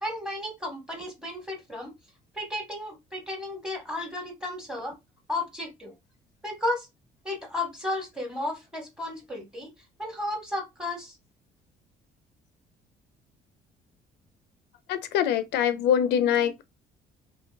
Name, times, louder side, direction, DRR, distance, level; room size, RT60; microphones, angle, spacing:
voice 1, 0.0-1.9 2.3-4.9 5.3-5.9 6.4-6.9 7.2-9.7 10.0-11.2, left 1 dB, 5° right, 1.2 m, -33 dB
voice 2, 14.9-16.6, left 9 dB, 80° left, 0.4 m, -24 dB
3.0 x 2.9 x 2.2 m
cardioid pair, 110°, 17 cm